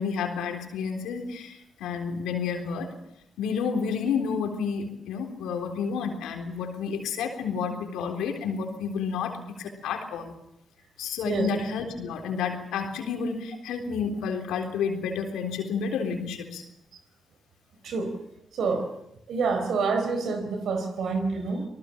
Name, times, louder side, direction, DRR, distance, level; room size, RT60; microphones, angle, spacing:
voice 1, 0.0-2.9 3.4-10.4 11.0-16.6, left 6 dB, 80° left, 4 dB, 3.7 m, -30 dB
voice 2, 18.5-18.9 19.3-21.7, right 4 dB, 70° right, 7 dB, 4.6 m, -27 dB
26.5 x 19.0 x 7.2 m, 0.81 s
hypercardioid pair, 45°, 0 cm